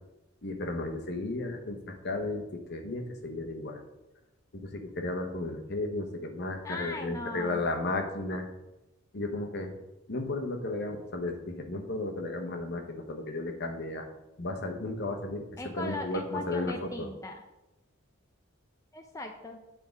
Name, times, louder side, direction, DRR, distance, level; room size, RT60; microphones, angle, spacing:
voice 1, 0.4-3.8 4.5-8.5 9.1-9.7 10.1-14.1 14.4-17.1, left 2 dB, 55° left, 4 dB, 1.0 m, -34 dB
voice 2, 6.6-7.6 15.6-17.4 18.9-19.6, left 2 dB, 15° left, 4 dB, 0.4 m, -38 dB
8.4 x 3.6 x 5.2 m, 0.97 s
head